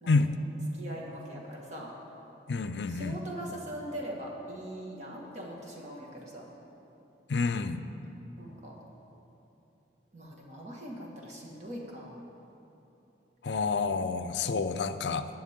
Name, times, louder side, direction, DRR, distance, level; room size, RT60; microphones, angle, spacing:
voice 1, 0.7-1.9 2.9-6.5 8.4-8.7 10.1-12.2, right 1 dB, 40° right, -2 dB, 1.8 m, -41 dB
voice 2, 2.5-3.2 7.3-7.8 13.4-15.3, left 4 dB, 75° left, 10 dB, 0.5 m, -28 dB
20.0 x 7.2 x 3.7 m, 3.0 s
head